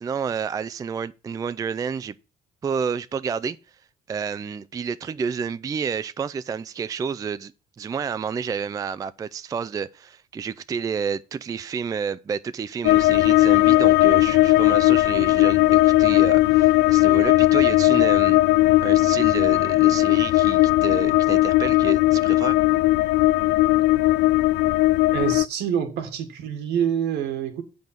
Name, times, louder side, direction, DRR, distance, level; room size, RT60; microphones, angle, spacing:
voice 1, 0.0-2.1 2.6-3.6 4.1-7.5 7.8-18.4 18.8-22.6, right 6 dB, 20° right, 0.3 m, -30 dB
sound 1, 12.8-25.5, left 18 dB, 80° left, 0.4 m, -18 dB
voice 2, 25.1-27.6, right 9 dB, 80° right, 1.7 m, -26 dB
7.8 x 5.4 x 5.7 m
cardioid pair, 110°, 17 cm